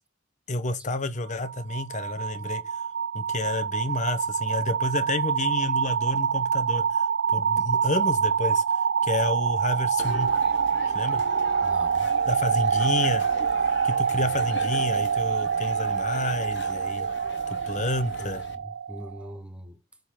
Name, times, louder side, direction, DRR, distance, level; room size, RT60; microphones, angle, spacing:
voice 1, 0.5-2.6 3.1-10.3 10.9-11.2 12.3-13.2 13.8-17.1 17.5-18.4, left 2 dB, 40° left, 1.0 m, -30 dB
sound 1, 1.3-19.2, right 6 dB, 60° right, 0.4 m, -26 dB
sound 2, 10.0-18.6, left 4 dB, 65° left, 0.9 m, -41 dB
voice 2, 11.6-12.1 14.1-14.4 17.7-17.9 18.2-19.8, equal, 5° right, 0.9 m, -42 dB
7.1 x 4.0 x 5.0 m
head